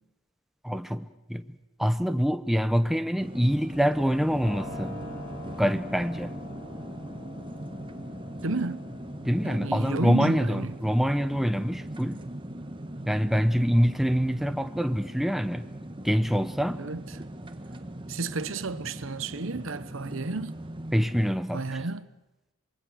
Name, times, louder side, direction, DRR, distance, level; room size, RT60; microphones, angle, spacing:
voice 1, 0.6-1.4 1.8-5.0 5.6-6.3 9.3-12.2 13.1-15.7 16.0-16.8 20.9-21.6, equal, ahead, 0.8 m, -25 dB
sound 1, 3.2-21.3, right 1 dB, 25° right, 1.3 m, -40 dB
Keyboard (musical), 4.4-17.1, left 2 dB, 15° left, 5.9 m, -47 dB
voice 2, 8.4-8.8 9.4-10.8 16.8-17.2 18.1-20.6 21.5-22.1, right 3 dB, 60° right, 0.9 m, -32 dB
25.5 x 23.0 x 6.4 m
head